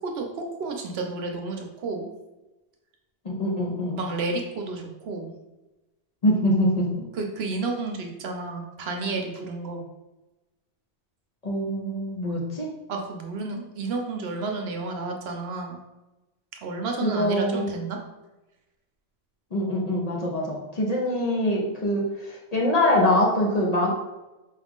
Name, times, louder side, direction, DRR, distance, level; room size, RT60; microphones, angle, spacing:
voice 1, 0.0-2.1 3.9-5.3 7.1-9.8 12.9-15.8 16.6-18.0, right 3 dB, 70° right, 3 dB, 0.8 m, -31 dB
voice 2, 3.2-4.0 6.2-6.9 11.4-12.7 17.0-17.7 19.5-23.9, left 1 dB, 40° left, -2 dB, 0.7 m, -24 dB
4.5 x 2.4 x 3.5 m, 1.0 s
omnidirectional pair, 1.1 m